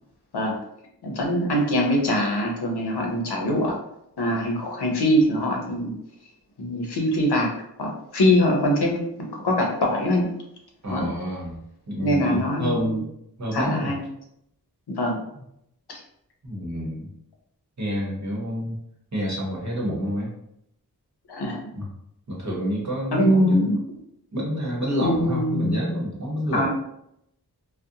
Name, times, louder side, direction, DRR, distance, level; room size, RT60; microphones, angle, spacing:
voice 1, 1.0-3.7 4.2-5.9 6.6-7.5 7.8-10.3 10.9-11.0 12.0-13.0 13.5-14.0 14.9-15.2 15.9-16.0 21.3-21.6 23.1-23.8 25.0-26.0 26.5-26.7, equal, 85° left, 0 dB, 0.7 m, -23 dB
voice 2, 10.8-11.6 11.9-13.1 13.4-13.9 15.3-15.4 16.4-17.1 17.8-18.8 19.1-20.3 21.8-21.9 22.3-23.6 24.3-26.7, equal, 45° right, -4 dB, 0.9 m, -28 dB
2.4 x 2.1 x 2.7 m, 0.77 s
wide cardioid pair, 60°, 39 cm